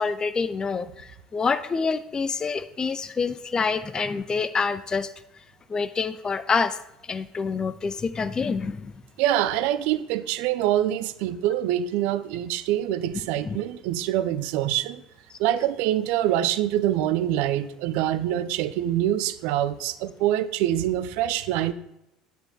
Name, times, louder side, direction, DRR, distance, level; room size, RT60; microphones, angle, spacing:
voice 1, 0.0-5.1 5.7-6.8 7.1-8.9 13.4-13.6, left 5 dB, 25° left, 11 dB, 0.3 m, -27 dB
voice 2, 9.2-15.0 15.4-21.7, right 12 dB, 60° right, 14 dB, 0.4 m, -25 dB
9.1 x 8.8 x 2.2 m, 0.84 s
figure-of-eight pair, 60°, 3 cm